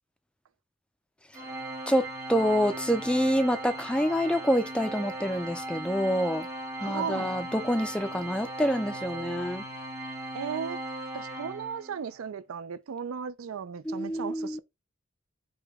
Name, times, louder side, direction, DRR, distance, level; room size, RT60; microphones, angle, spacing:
Organ, 1.3-12.1, right 2 dB, 15° right, 1.1 m, -38 dB
voice 1, 1.9-6.5 6.8-9.6 13.9-14.6, equal, 5° left, 0.3 m, -27 dB
voice 2, 6.8-7.4 10.3-10.8 11.1-14.6, right 7 dB, 75° right, 0.4 m, -36 dB
4.8 x 2.2 x 4.7 m
head